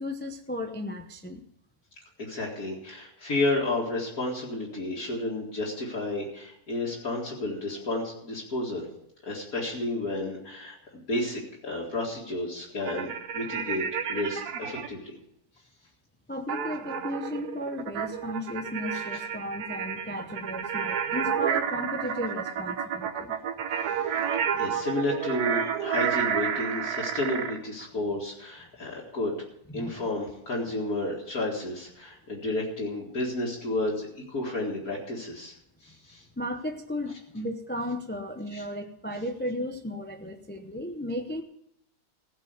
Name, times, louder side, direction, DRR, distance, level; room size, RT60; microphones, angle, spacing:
voice 1, 0.0-1.4 16.3-23.4 24.6-24.7 27.8-27.9 28.8-28.9 29.7-30.0 36.4-41.4, left 1 dB, 15° left, 5 dB, 0.4 m, -35 dB
voice 2, 2.2-8.9 9.2-13.1 13.3-15.2 24.6-29.4 29.7-35.5 35.8-36.2 38.5-38.6, left 2 dB, 65° left, -4 dB, 2.5 m, -31 dB
sound 1, 12.8-14.9 16.5-27.6, right 8 dB, 85° right, 1.4 m, -30 dB
16.0 x 5.5 x 7.9 m, 0.75 s
omnidirectional pair, 1.6 m